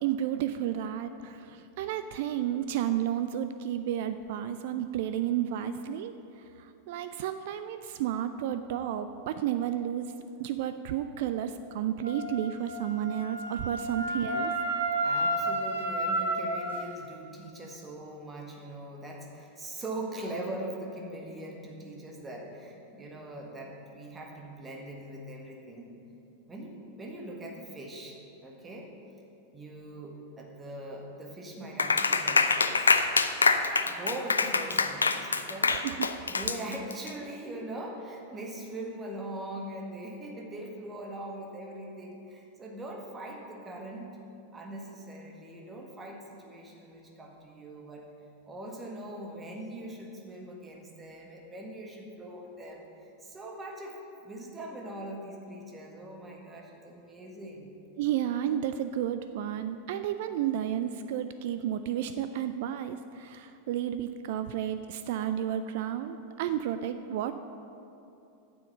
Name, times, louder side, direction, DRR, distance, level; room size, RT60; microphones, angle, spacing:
voice 1, 0.0-6.1 6.6-10.1 10.4-14.5 35.7-35.9 58.0-67.3, right 10 dB, 50° right, 10 dB, 0.4 m, -32 dB
Wind instrument woodwind instrument, 12.0-16.7, right 1 dB, 75° right, 2.6 m, -31 dB
voice 2, 15.0-25.9 26.5-28.9 29.5-32.9 33.8-35.8 36.3-44.1 44.5-48.1 48.5-54.0 54.2-57.7, right 1 dB, 15° right, 0 dB, 1.6 m, -41 dB
Clapping, 31.8-37.1, left 4 dB, 75° left, 0.5 m, -25 dB
9.4 x 7.3 x 6.8 m, 2.8 s
figure-of-eight pair, 90°, 0 cm